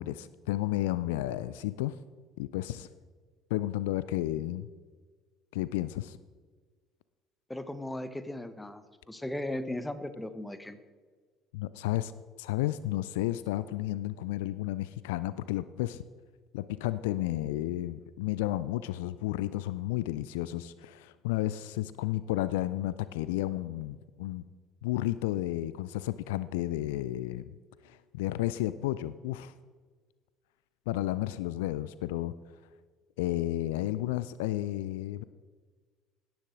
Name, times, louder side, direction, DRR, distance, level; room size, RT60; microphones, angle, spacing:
voice 1, 0.0-2.0 2.4-2.9 3.5-4.7 5.5-6.2 11.5-12.1 12.4-16.0 16.5-24.4 24.8-27.5 27.8-29.5 30.9-32.3 33.2-35.2, left 15 dB, 70° left, 16 dB, 0.3 m, -32 dB
voice 2, 7.5-10.8, left 1 dB, 10° left, 12 dB, 1.1 m, -37 dB
17.0 x 10.5 x 3.8 m, 1.5 s
figure-of-eight pair, 55°, 0 cm